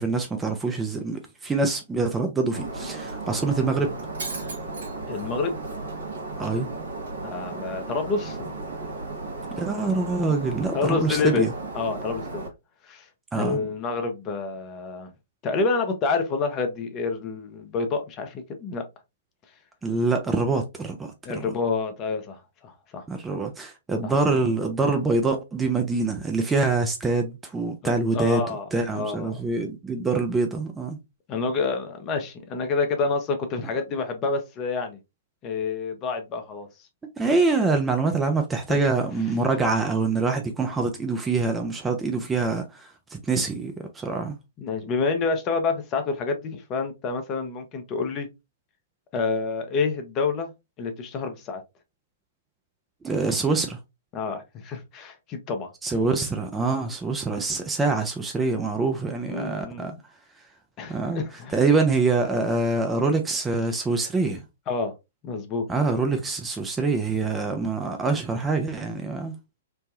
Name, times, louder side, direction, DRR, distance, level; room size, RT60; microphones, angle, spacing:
voice 1, 0.0-3.9 6.4-6.7 9.6-11.5 13.3-13.6 19.8-21.4 23.1-31.0 37.2-44.4 53.0-53.8 55.8-60.0 60.9-61.2 61.5-64.4 65.7-69.4, right 3 dB, 10° right, 0.4 m, -25 dB
Shatter, 2.5-12.5, right 3 dB, 65° right, 1.0 m, -35 dB
voice 2, 5.1-5.6 7.2-8.5 10.7-11.5 11.7-12.5 12.9-13.1 13.3-15.1 15.4-18.8 21.2-23.0 24.0-24.1 28.1-28.7 28.9-29.4 31.3-35.0 35.4-36.7 38.7-38.8 44.6-48.3 49.1-50.5 50.8-51.6 54.1-55.7 59.3-60.0 60.8-61.5 64.7-64.9 65.2-65.6, left 4 dB, 30° left, 0.7 m, -28 dB
3.3 x 2.1 x 2.5 m
figure-of-eight pair, 115°, 0 cm